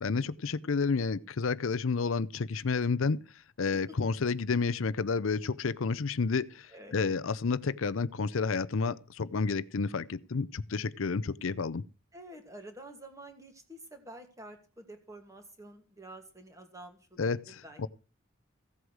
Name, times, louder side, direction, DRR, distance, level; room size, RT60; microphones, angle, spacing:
voice 1, 0.0-3.2 3.6-11.8 17.2-17.9, left 4 dB, 75° left, 0.6 m, -30 dB
voice 2, 12.1-17.9, right 1 dB, 15° right, 2.5 m, -49 dB
15.5 x 8.1 x 6.3 m
head